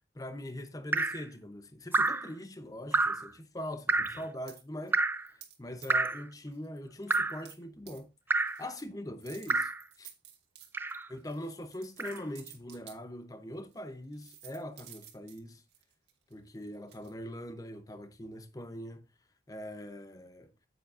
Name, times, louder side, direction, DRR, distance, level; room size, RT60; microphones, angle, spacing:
voice 1, 0.1-5.0 5.3-8.1 8.6-9.7 10.0-10.1 11.1-15.6 16.3-19.1 19.5-20.5, left 1 dB, 20° left, 0.7 m, -42 dB
Drip, 0.9-1.3 1.9-2.3 2.9-3.3 3.9-4.2 4.9-5.3 5.9-6.3 7.1-7.4 8.3-8.6 9.5-9.8 10.7-11.1 12.0-12.2, right 3 dB, 10° right, 0.3 m, -29 dB
sound 1, 4.1-4.6 5.4-5.6 5.8-6.2 6.5-6.7 7.1-7.6 7.9-8.0 8.4-8.8 9.2-13.0 13.7-13.8 14.1-17.1, right 11 dB, 65° right, 1.8 m, -53 dB
9.0 x 7.9 x 2.6 m
head